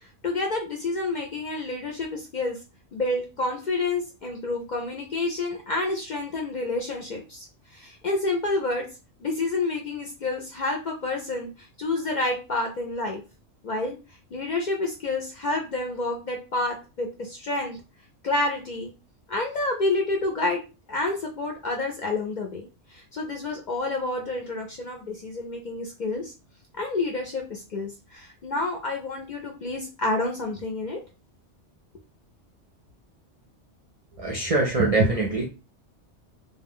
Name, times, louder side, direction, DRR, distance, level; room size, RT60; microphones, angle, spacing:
voice 1, 0.2-2.6 2.9-7.5 7.7-8.8 9.2-13.2 13.6-14.0 14.3-17.8 18.2-18.9 19.3-20.6 20.9-22.6 22.9-26.3 26.8-31.0, left 2 dB, 55° left, 1 dB, 0.5 m, -29 dB
voice 2, 34.2-35.5, right 2 dB, 45° right, -1 dB, 0.4 m, -23 dB
2.3 x 2.2 x 3.5 m, 0.31 s
omnidirectional pair, 1.2 m